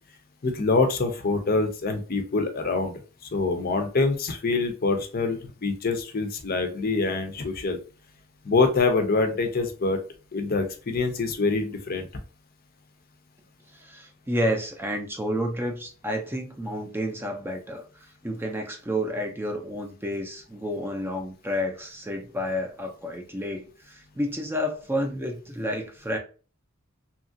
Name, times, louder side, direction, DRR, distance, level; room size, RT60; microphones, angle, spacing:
voice 1, 0.4-3.0 3.3-7.8 8.4-10.0 10.3-12.1, left 3 dB, 45° left, 5 dB, 0.5 m, -25 dB
voice 2, 13.7-26.2, equal, 10° right, 3 dB, 0.4 m, -30 dB
2.8 x 2.4 x 2.6 m, 0.36 s
head